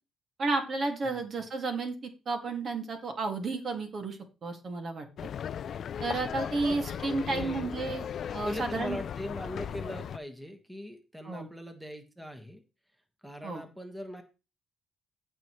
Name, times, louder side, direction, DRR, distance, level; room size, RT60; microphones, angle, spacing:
voice 1, 0.4-5.1 6.0-8.1 8.3-9.0 11.2-11.5 13.4-13.6, right 3 dB, 50° right, 4 dB, 2.2 m, -32 dB
sound 1, 5.2-10.2, left 8 dB, 60° left, 0.4 m, -37 dB
voice 2, 7.0-7.7 8.4-12.6 13.2-14.2, equal, 5° right, 6 dB, 1.5 m, -40 dB
15.0 x 5.6 x 3.2 m, 0.30 s
cardioid pair, 90°, 0 cm